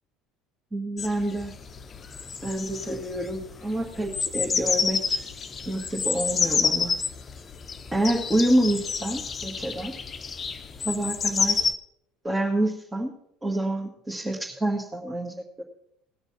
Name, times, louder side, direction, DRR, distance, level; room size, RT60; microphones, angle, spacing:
voice 1, 0.7-1.5 2.4-5.2 5.7-6.9 7.9-9.9 10.8-11.6 12.2-13.1 13.4-15.6, right 1 dB, 15° right, -2 dB, 1.8 m, -27 dB
sound 1, 1.0-11.7, left 5 dB, 30° left, 0.9 m, -29 dB
18.5 x 6.6 x 6.0 m, 0.74 s
figure-of-eight pair, 60°, 0 cm